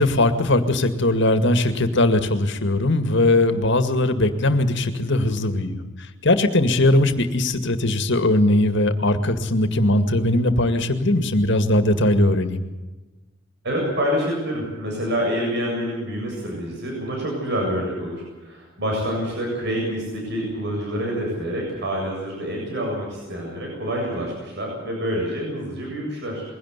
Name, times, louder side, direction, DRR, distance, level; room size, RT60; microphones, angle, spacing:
voice 1, 0.0-5.8 6.2-12.6, left 1 dB, 65° left, 9 dB, 2.2 m, -19 dB
voice 2, 13.6-26.4, equal, 60° right, -1 dB, 7.5 m, -27 dB
22.0 x 17.0 x 8.3 m, 1.1 s
head